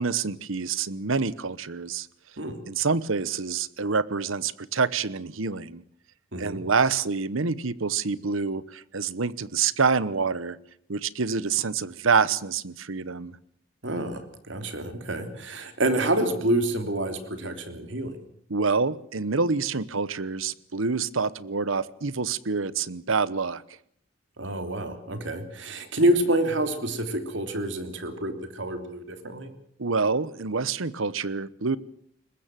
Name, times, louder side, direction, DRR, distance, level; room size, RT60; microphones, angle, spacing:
voice 1, 0.0-2.1 2.7-5.8 6.4-10.6 10.9-13.4 18.5-23.6 29.8-31.8, right 5 dB, 80° right, 18 dB, 1.0 m, -27 dB
voice 2, 6.3-6.6 13.8-14.2 14.5-18.2 24.4-29.5, right 1 dB, 65° right, 8 dB, 3.1 m, -27 dB
22.5 x 20.5 x 7.6 m, 0.66 s
head